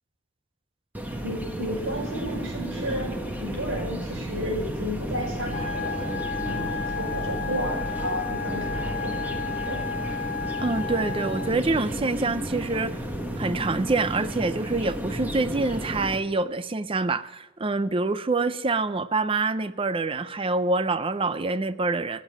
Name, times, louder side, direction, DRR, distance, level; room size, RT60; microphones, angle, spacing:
sound 1, 0.9-16.2, right 1 dB, 10° right, 1.3 m, -32 dB
voice 1, 1.2-3.1 3.4-9.9, equal, 85° right, 4.9 m, -33 dB
sound 2, 5.5-11.5, left 6 dB, 40° left, 1.7 m, -33 dB
voice 2, 10.6-12.9 13.4-22.2, right 3 dB, 25° right, 0.5 m, -26 dB
14.5 x 7.4 x 9.4 m
head